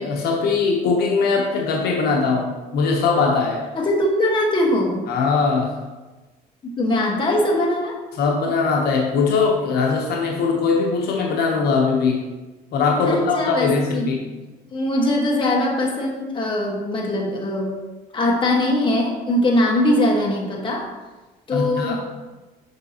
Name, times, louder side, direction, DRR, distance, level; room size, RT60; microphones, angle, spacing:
voice 1, 0.0-3.6 5.1-5.8 8.1-12.2 12.7-14.3 21.5-22.0, left 4 dB, 70° left, -1 dB, 1.0 m, -21 dB
voice 2, 3.7-5.1 6.6-8.0 13.0-14.1 14.7-17.7 18.1-20.9 21.5-22.0, left 1 dB, 30° left, -2 dB, 1.5 m, -21 dB
6.7 x 5.6 x 2.9 m, 1.2 s
cardioid pair, 110°, 17 cm